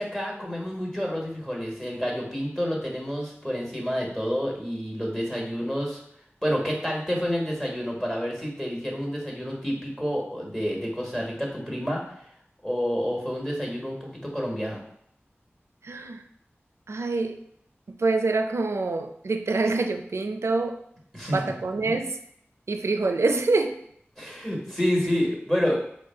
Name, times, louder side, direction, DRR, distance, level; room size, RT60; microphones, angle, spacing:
voice 1, 0.0-6.0 6.4-12.1 12.6-14.8 21.1-21.5 21.8-21.9 24.2-25.8, equal, 10° left, -1 dB, 1.4 m, -29 dB
voice 2, 15.8-16.2 16.9-17.4 17.9-20.8 21.3-22.2 22.7-23.8, right 3 dB, 85° right, 6 dB, 0.4 m, -26 dB
4.5 x 2.2 x 4.3 m, 0.71 s
wide cardioid pair, 45°, 4 cm